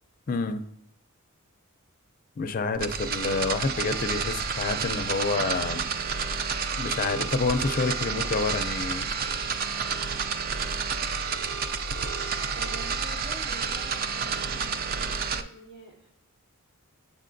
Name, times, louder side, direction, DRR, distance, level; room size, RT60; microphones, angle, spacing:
voice 1, 0.3-0.6 2.4-5.9 6.8-9.1, left 3 dB, 40° left, 9 dB, 0.4 m, -28 dB
sound 1, 2.7-15.4, right 5 dB, 40° right, 0.3 m, -30 dB
voice 2, 12.5-16.1, right 3 dB, 65° right, -4 dB, 2.7 m, -46 dB
7.0 x 6.5 x 2.6 m, 0.77 s
head